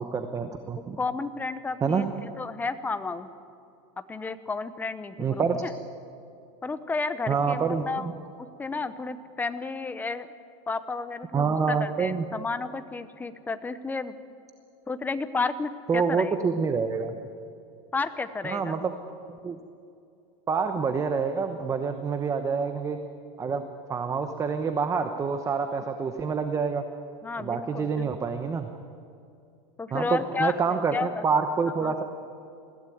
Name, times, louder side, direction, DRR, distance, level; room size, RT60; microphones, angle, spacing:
voice 1, 0.0-1.0 1.8-2.0 5.2-5.6 7.3-8.1 11.3-12.2 15.9-17.2 18.4-18.9 19.3-19.6 20.5-23.0 23.4-23.6 23.9-26.8 27.4-28.7 29.9-32.0, right 5 dB, 20° right, 7 dB, 1.0 m, -27 dB
voice 2, 1.0-3.3 4.1-5.7 6.6-8.1 8.6-10.3 10.7-14.2 14.9-16.3 17.9-18.8 27.2-28.4 29.8-31.2 31.8-31.9, left 4 dB, 10° left, 11 dB, 0.8 m, -32 dB
21.0 x 16.0 x 9.3 m, 2.6 s
supercardioid pair, 150°, 17 cm